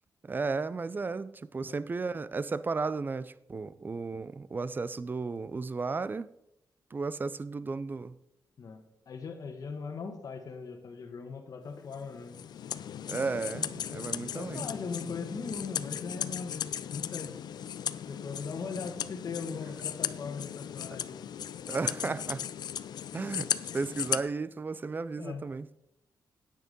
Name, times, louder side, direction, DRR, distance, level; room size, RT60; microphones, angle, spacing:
voice 1, 0.2-6.3 6.9-8.2 13.1-14.7 21.7-22.5 23.1-25.7, right 4 dB, 25° right, 0.5 m, -34 dB
voice 2, 8.6-12.4 14.2-17.3 18.1-21.2 21.8-22.1 25.2-25.4, left 5 dB, 55° left, 1.3 m, -40 dB
sound 1, 11.9-24.2, left 9 dB, 70° left, 0.5 m, -37 dB
10.0 x 9.1 x 5.3 m
cardioid pair, 105°, 7 cm